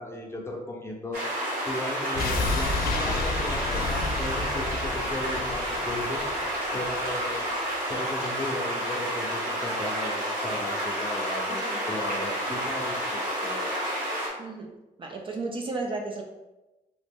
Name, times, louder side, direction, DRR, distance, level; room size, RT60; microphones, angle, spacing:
voice 1, 0.0-6.2 6.7-7.5 7.9-13.7, left 1 dB, 15° left, -1 dB, 0.6 m, -36 dB
sound 1, 1.1-14.3, equal, 60° right, 1.3 m, -30 dB
sound 2, 2.1-7.1 7.4-7.5, left 3 dB, 90° left, 0.4 m, -31 dB
voice 2, 11.5-11.8 14.4-16.2, right 3 dB, 35° right, 1 dB, 0.4 m, -34 dB
3.0 x 2.4 x 3.5 m, 1.0 s
cardioid pair, 110°, 15 cm